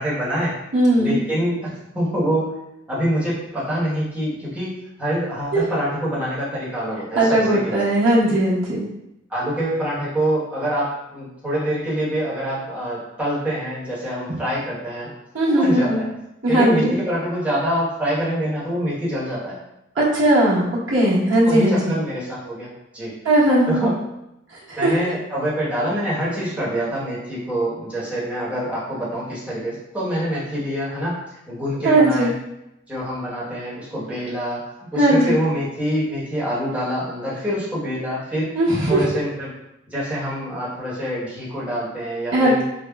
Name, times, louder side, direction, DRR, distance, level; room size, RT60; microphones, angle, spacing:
voice 1, 0.0-0.6 1.0-1.7 1.9-2.5 2.9-7.8 8.2-8.3 9.3-15.1 15.5-16.1 16.5-19.6 21.4-23.2 23.7-23.9 24.8-31.2 31.5-32.3 32.9-38.5 38.9-39.5 39.9-42.6, equal, 5° right, -9 dB, 1.0 m, -25 dB
voice 2, 0.7-1.2 5.5-5.6 7.1-8.8 15.3-16.0 16.4-16.9 20.0-20.6 20.9-21.9 23.2-23.8 24.7-24.9 31.8-32.3 35.0-35.3 38.6-39.1 42.3-42.6, right 1 dB, 85° right, -8 dB, 1.1 m, -18 dB
5.2 x 2.1 x 2.3 m, 0.87 s
head